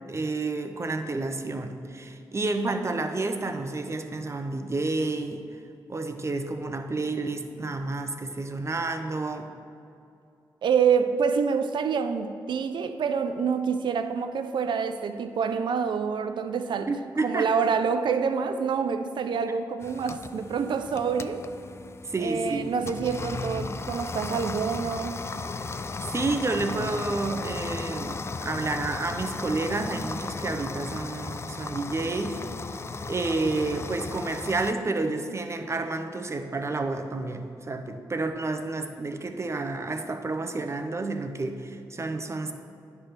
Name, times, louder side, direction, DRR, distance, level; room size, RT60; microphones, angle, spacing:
voice 1, 0.1-5.4 5.9-9.5 16.9-17.5 22.0-22.8 26.0-32.4 33.0-42.5, right 3 dB, 35° right, 7 dB, 0.7 m, -30 dB
voice 2, 10.6-17.0 17.2-21.5 22.2-25.2, right 6 dB, 65° right, 9 dB, 0.4 m, -27 dB
sound 1, 19.8-34.7, left 4 dB, 30° left, 0.3 m, -36 dB
9.6 x 3.4 x 5.9 m, 2.5 s
supercardioid pair, 55°, 9 cm